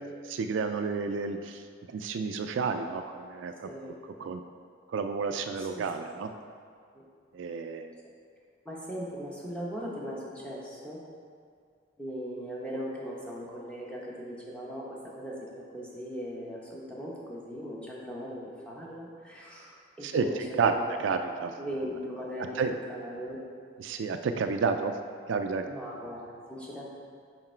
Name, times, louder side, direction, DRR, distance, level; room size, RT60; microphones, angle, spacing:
voice 1, 0.3-1.6 1.9-3.7 4.2-4.4 4.9-6.3 7.3-7.9 20.0-20.3 20.6-20.7 21.0-21.5 22.6-22.7 23.8-24.9 25.3-25.6, right 5 dB, 70° right, 7 dB, 0.3 m, -30 dB
voice 2, 3.6-3.9 5.5-5.8 6.9-7.0 8.6-11.0 12.0-20.8 21.6-23.4 25.7-26.8, equal, 5° left, -5 dB, 0.9 m, -39 dB
5.9 x 5.1 x 4.4 m, 2.2 s
head